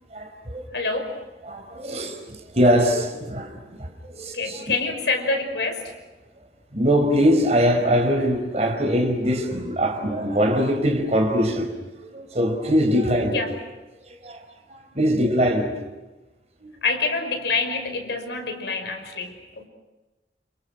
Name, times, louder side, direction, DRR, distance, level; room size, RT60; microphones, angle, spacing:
voice 1, 0.1-0.7 1.4-4.6 6.7-11.8 12.0-13.4 14.0-15.7 16.6-16.8, equal, 40° right, 4 dB, 5.0 m, -22 dB
voice 2, 0.7-1.1 4.3-5.9 13.3-13.5 16.8-19.7, left 3 dB, 80° left, 5 dB, 5.7 m, -26 dB
29.5 x 28.5 x 6.3 m, 1.1 s
head